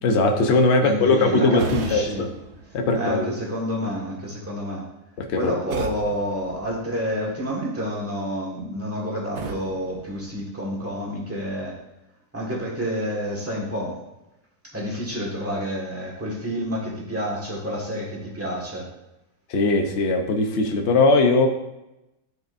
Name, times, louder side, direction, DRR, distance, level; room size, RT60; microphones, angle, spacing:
voice 1, 0.0-1.6 1.9-2.3 2.7-3.3 5.2-5.5 19.5-21.5, left 3 dB, 50° left, 4 dB, 1.0 m, -20 dB
voice 2, 0.8-2.2 2.9-4.8 5.4-11.8 12.3-14.0 14.7-18.9, equal, 10° right, -4 dB, 1.6 m, -29 dB
sound 1, 1.6-3.5 5.7-7.4 9.3-11.0, right 4 dB, 60° right, 0.8 m, -37 dB
12.0 x 4.7 x 2.6 m, 0.93 s
omnidirectional pair, 1.7 m